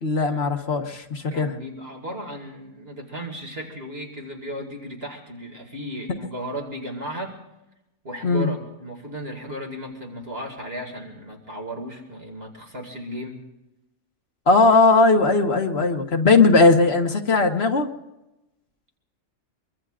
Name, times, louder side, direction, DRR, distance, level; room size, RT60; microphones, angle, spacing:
voice 1, 0.0-1.5 8.2-8.5 14.5-17.9, left 3 dB, 50° left, 4 dB, 1.6 m, -18 dB
voice 2, 1.3-7.4 8.0-13.5, equal, 45° right, 1 dB, 2.5 m, -35 dB
24.0 x 23.5 x 2.5 m, 0.95 s
omnidirectional pair, 1.4 m